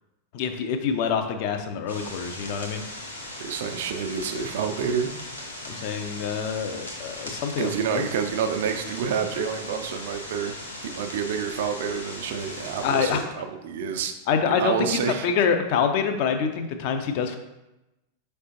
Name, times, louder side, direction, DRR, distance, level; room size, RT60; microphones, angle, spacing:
voice 1, 0.3-2.8 5.6-8.0 12.8-13.2 14.3-17.4, left 6 dB, 45° left, 7 dB, 0.4 m, -26 dB
sound 1, 1.9-13.2, left 1 dB, 85° left, 1.0 m, -38 dB
voice 2, 3.3-5.1 7.6-14.1 14.4-15.3, right 7 dB, 55° right, 7 dB, 0.4 m, -28 dB
4.9 x 3.3 x 2.8 m, 0.98 s
figure-of-eight pair, 90°, 0 cm